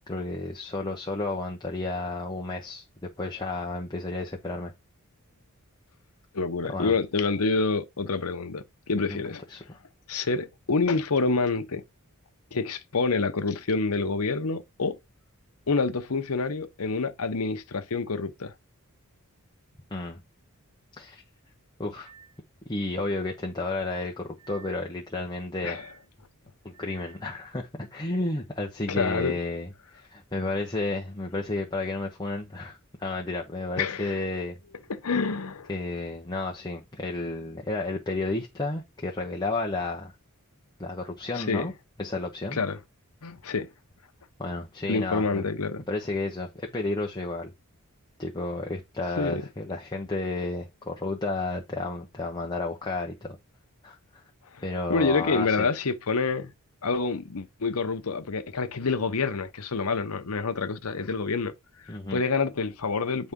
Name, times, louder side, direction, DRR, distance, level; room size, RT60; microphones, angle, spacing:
voice 1, 0.1-4.7 6.7-6.9 9.1-9.2 9.5-9.8 19.9-20.2 21.0-21.2 21.8-22.1 22.7-25.8 26.6-34.6 35.7-40.1 40.8-41.7 42.0-42.6 44.4-45.4 45.9-47.5 48.2-53.4 53.8-54.2 54.6-55.7 61.9-62.2, left 2 dB, 20° left, 0.9 m, -32 dB
voice 2, 6.3-9.4 10.1-11.8 12.5-15.0 15.7-18.5 25.6-25.8 28.9-29.3 33.8-34.2 34.9-35.7 41.3-41.7 42.5-42.8 43.2-43.7 44.9-45.8 49.2-49.5 54.5-54.6 54.9-56.5 56.8-61.5 61.8-63.3, left 4 dB, 75° left, 0.9 m, -27 dB
sound 1, 22.0-22.4 24.4-24.9 25.5-26.1 26.7-27.3 28.9-29.3, right 7 dB, 40° right, 3.3 m, -52 dB
9.3 x 4.1 x 3.7 m
head